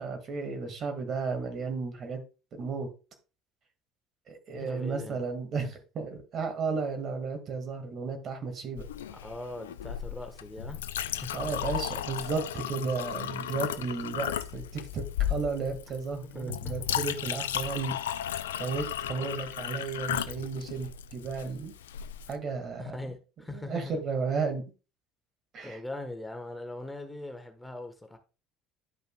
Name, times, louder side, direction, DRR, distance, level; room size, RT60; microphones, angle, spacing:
voice 1, 0.0-2.2 2.5-2.9 4.3-8.8 11.3-18.0 18.6-21.7 22.3-23.1 23.5-24.6 25.5-25.8, right 4 dB, 50° right, 1.9 m, -33 dB
voice 2, 4.6-5.2 9.1-11.5 16.2-16.8 19.2-19.3 22.8-23.9 25.6-28.2, left 2 dB, 10° left, 1.3 m, -41 dB
Chink clink, 8.8-22.3, left 11 dB, 85° left, 0.3 m, -35 dB
11.0 x 5.4 x 2.3 m
hypercardioid pair, 65°, 0 cm